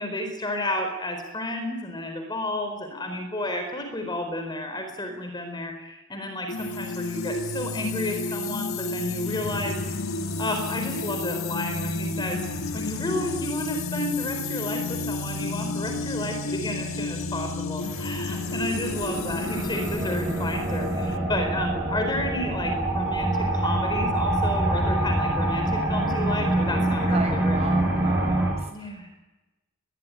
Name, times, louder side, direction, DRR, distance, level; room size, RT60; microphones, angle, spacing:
voice 1, 0.0-12.4 12.7-27.6 28.7-29.1, left 1 dB, 20° left, 5 dB, 4.2 m, -32 dB
sound 1, 6.5-21.2, left 3 dB, 75° left, 1.6 m, -31 dB
sound 2, 17.9-28.5, right 1 dB, 10° right, 7.0 m, -25 dB
voice 2, 27.1-29.1, right 3 dB, 30° right, 4 dB, 6.4 m, -35 dB
23.0 x 21.0 x 9.3 m, 1.1 s
head